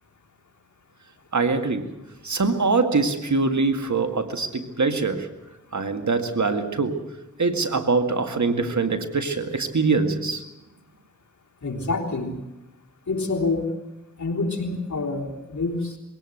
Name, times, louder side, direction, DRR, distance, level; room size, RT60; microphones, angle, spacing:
voice 1, 1.3-2.0 2.2-5.3 5.7-7.1 7.4-10.4, right 4 dB, 75° right, 7 dB, 2.1 m, -23 dB
voice 2, 11.6-12.4 13.1-13.7 14.2-16.0, left 3 dB, 80° left, 0 dB, 3.8 m, -27 dB
22.5 x 17.5 x 7.9 m, 0.97 s
wide cardioid pair, 45°, 29 cm